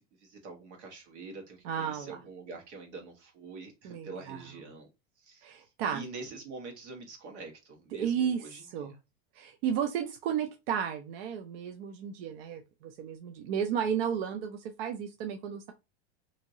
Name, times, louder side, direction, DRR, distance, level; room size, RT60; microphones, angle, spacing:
voice 1, 0.0-4.9 5.2-8.7, right 3 dB, 85° right, 2 dB, 1.3 m, -45 dB
voice 2, 1.6-2.2 3.8-4.4 5.4-6.0 7.9-8.9 9.3-15.7, right 8 dB, 60° right, 5 dB, 0.5 m, -33 dB
2.8 x 2.8 x 2.6 m, 0.26 s
supercardioid pair, 160°, 33 cm